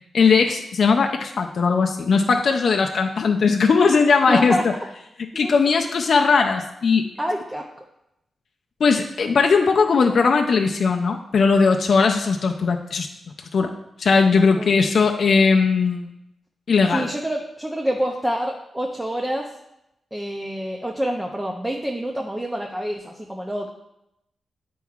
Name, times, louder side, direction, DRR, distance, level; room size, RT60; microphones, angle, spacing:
voice 1, 0.1-4.7 5.2-7.1 8.8-13.1 13.5-13.7 14.0-16.1 16.7-17.1, left 5 dB, 50° left, 3 dB, 0.4 m, -19 dB
voice 2, 4.3-4.6 5.4-5.5 7.2-7.7 14.4-14.7 16.9-19.5 20.1-23.7, equal, 10° right, 0 dB, 0.4 m, -27 dB
9.9 x 4.5 x 2.4 m, 0.84 s
wide cardioid pair, 175°, 0 cm